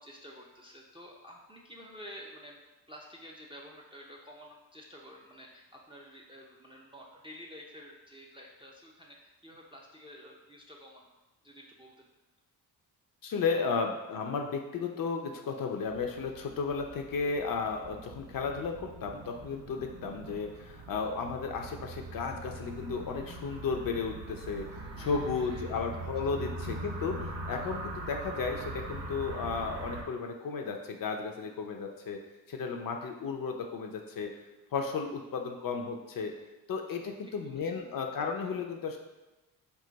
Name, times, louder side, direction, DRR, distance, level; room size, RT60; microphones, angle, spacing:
voice 1, 0.0-2.6 2.9-11.1 11.4-12.1 24.8-25.6 36.9-37.6, equal, 10° right, -2 dB, 0.4 m, -50 dB
voice 2, 13.2-32.2 32.5-34.3 34.7-36.3 36.7-39.0, left 5 dB, 45° left, 3 dB, 0.5 m, -34 dB
sound 1, 15.9-30.0, right 2 dB, 50° right, 0.7 m, -42 dB
2.4 x 2.3 x 3.8 m, 1.1 s
hypercardioid pair, 45°, 49 cm